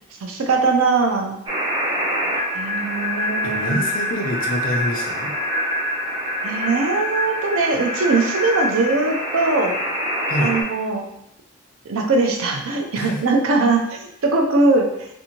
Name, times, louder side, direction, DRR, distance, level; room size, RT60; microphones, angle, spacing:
voice 1, 0.2-1.4 2.5-3.8 6.4-9.8 10.4-11.0 11.9-15.1, right 3 dB, 85° right, 2 dB, 0.5 m, -21 dB
sound 1, 1.5-10.6, equal, 20° right, 0.5 m, -25 dB
voice 2, 3.4-5.3 10.3-10.6 13.0-13.2, left 1 dB, 40° left, 1 dB, 0.4 m, -26 dB
2.6 x 2.6 x 2.9 m, 0.79 s
head